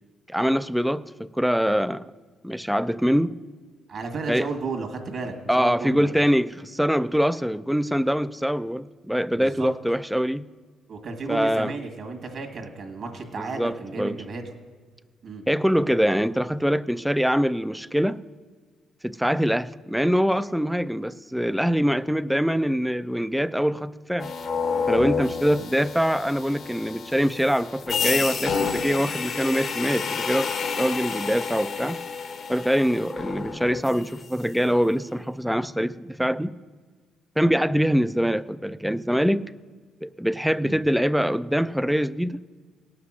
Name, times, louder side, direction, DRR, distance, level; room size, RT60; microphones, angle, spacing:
voice 1, 0.3-2.0 2.4-3.3 4.3-4.5 5.5-10.4 11.3-11.7 13.4-14.2 15.5-18.2 19.0-24.3 24.9-32.0 32.5-36.5 37.4-39.5 40.0-42.4, equal, ahead, 15 dB, 0.3 m, -24 dB
voice 2, 3.9-6.1 9.3-9.7 10.9-14.4 15.2-15.4 25.6-25.7 40.6-40.8, right 3 dB, 60° right, 5 dB, 1.8 m, -33 dB
sound 1, 24.2-34.3, left 5 dB, 60° left, 1.0 m, -30 dB
17.5 x 5.9 x 6.2 m, 1.5 s
cardioid pair, 90°, 0 cm